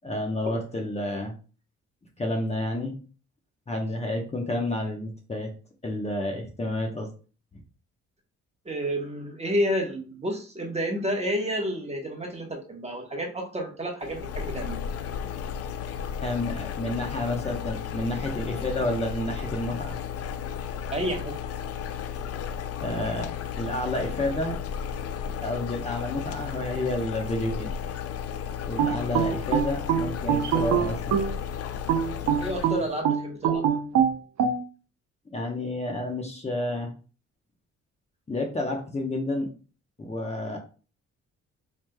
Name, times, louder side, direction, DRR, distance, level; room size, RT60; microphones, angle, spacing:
voice 1, 0.0-1.3 2.2-3.0 3.7-5.5 5.8-7.1 16.2-20.0 22.8-23.3 23.6-24.6 25.4-27.7 28.7-31.2 35.3-36.9 38.3-39.5 40.0-40.6, left 1 dB, 20° left, 2 dB, 0.9 m, -30 dB
voice 2, 8.6-14.8 20.9-21.4 32.4-33.8, equal, 20° right, 1 dB, 1.0 m, -30 dB
sound 1, 14.0-33.0, left 8 dB, 55° left, 0.4 m, -34 dB
sound 2, 28.8-31.4 31.9-34.6, right 8 dB, 65° right, 0.7 m, -24 dB
4.9 x 3.2 x 2.2 m, 0.37 s
cardioid pair, 90°, 30 cm